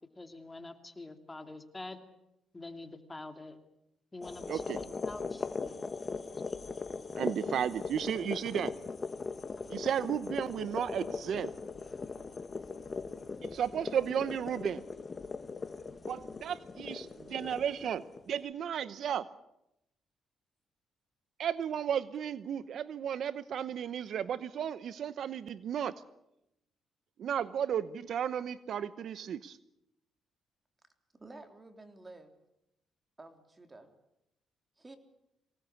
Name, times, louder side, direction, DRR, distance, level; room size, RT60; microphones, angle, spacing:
voice 1, 0.2-2.0 2.5-3.6 4.1-5.5, left 2 dB, 20° left, 7 dB, 2.7 m, -46 dB
sound 1, 4.2-18.4, left 4 dB, 35° left, 1.9 m, -39 dB
voice 2, 4.5-4.8 7.2-8.7 9.7-11.5 13.4-14.8 16.1-19.3 21.4-26.0 27.2-29.6, right 8 dB, 65° right, 15 dB, 0.9 m, -34 dB
voice 3, 31.1-32.3 33.2-33.9 34.8-35.0, right 2 dB, 20° right, 6 dB, 3.6 m, -51 dB
24.0 x 18.5 x 8.6 m, 0.84 s
cardioid pair, 90°, 0 cm